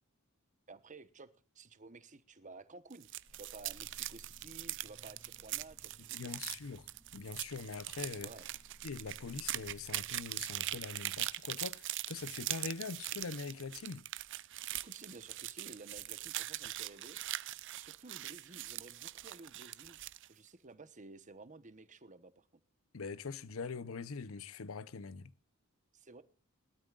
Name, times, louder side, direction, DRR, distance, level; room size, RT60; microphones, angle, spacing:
voice 1, 0.7-1.3 1.5-6.3 8.1-8.5 14.8-17.5 17.8-20.0 20.3-22.5 25.9-26.2, right 3 dB, 35° right, 1.1 m, -54 dB
sound 1, 2.9-20.3, right 15 dB, 60° right, 0.6 m, -42 dB
sound 2, 3.3-12.4, equal, 5° left, 2.6 m, -61 dB
voice 2, 6.1-6.9 7.1-8.3 8.8-14.0 22.9-25.3, left 4 dB, 75° left, 0.7 m, -43 dB
21.5 x 12.5 x 2.4 m
head